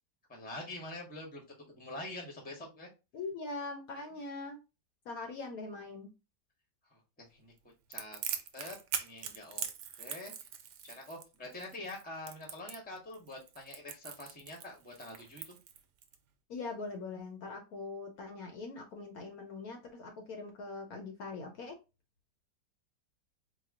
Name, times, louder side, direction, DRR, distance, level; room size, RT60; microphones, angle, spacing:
voice 1, 0.3-1.4 1.8-2.9 6.9-7.5 7.9-8.2 8.5-9.7 10.0-10.3 10.8-15.6, left 2 dB, 5° left, 2 dB, 0.7 m, -45 dB
voice 2, 3.1-4.6 5.1-6.1 16.5-21.8, left 3 dB, 65° left, 4 dB, 1.0 m, -42 dB
Crackle, 7.9-16.2, right 8 dB, 75° right, 1.2 m, -41 dB
4.2 x 2.2 x 3.6 m, 0.28 s
omnidirectional pair, 1.9 m